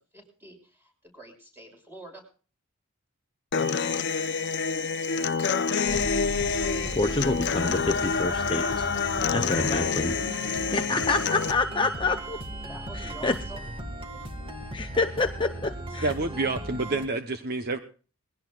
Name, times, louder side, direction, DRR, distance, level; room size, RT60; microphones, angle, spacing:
voice 1, 0.1-2.2 12.7-13.7, right 2 dB, 10° right, 2 dB, 6.3 m, -47 dB
Human voice / Acoustic guitar, 3.5-11.5, left 5 dB, 55° left, 0.7 m, -27 dB
sound 1, 3.6-13.6, right 6 dB, 85° right, 4.4 m, -44 dB
sound 2, 5.9-17.1, right 1 dB, 25° right, 1.9 m, -37 dB
voice 2, 7.0-8.9 9.3-10.2 10.7-12.4 13.0-13.3 14.7-16.1, left 3 dB, 25° left, 6 dB, 0.7 m, -27 dB
voice 3, 16.0-17.8, right 3 dB, 50° right, 7 dB, 1.0 m, -28 dB
21.5 x 17.0 x 2.4 m, 0.38 s
head